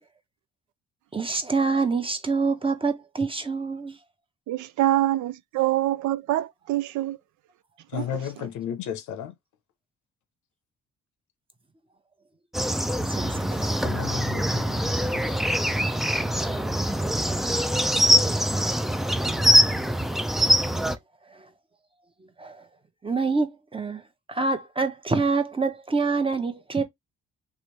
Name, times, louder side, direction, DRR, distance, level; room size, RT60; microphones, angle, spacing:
voice 1, 1.1-4.0 13.1-13.7 22.4-22.6 23.0-24.0 24.3-26.8, right 4 dB, 15° right, 0.8 m, -26 dB
voice 2, 4.5-7.2 7.9-8.0, right 14 dB, 75° right, 0.5 m, -25 dB
voice 3, 7.9-9.3 13.8-15.3, left 9 dB, 75° left, 0.7 m, -34 dB
sound 1, 12.5-21.0, equal, ahead, 0.3 m, -23 dB
3.0 x 2.6 x 3.1 m
cardioid pair, 90°, 30 cm